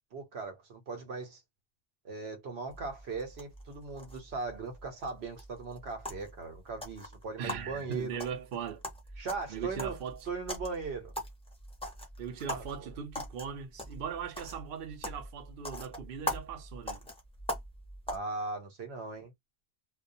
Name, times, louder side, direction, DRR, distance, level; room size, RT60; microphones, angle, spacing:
voice 1, 0.1-1.4 2.0-8.2 9.2-10.0 10.3-11.1 12.5-12.9 18.1-19.3, right 4 dB, 80° right, 1.1 m, -39 dB
sound 1, 2.7-18.2, left 1 dB, 5° left, 0.6 m, -42 dB
voice 2, 7.4-8.8 9.2-10.3 12.2-17.0, right 7 dB, 65° right, 0.8 m, -40 dB
2.3 x 2.2 x 2.6 m
omnidirectional pair, 1.1 m